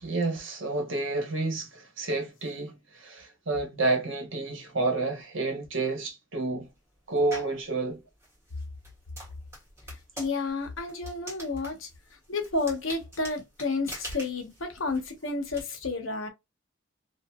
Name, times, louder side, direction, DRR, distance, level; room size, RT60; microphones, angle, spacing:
voice 1, 0.0-6.7 7.1-8.0, right 3 dB, 70° right, 1.1 m, -30 dB
sound 1, 7.3-7.6 8.2-15.6, equal, 15° right, 1.4 m, -44 dB
voice 2, 10.2-11.9 12.3-16.3, left 3 dB, 80° left, 1.0 m, -31 dB
2.8 x 2.5 x 2.3 m
head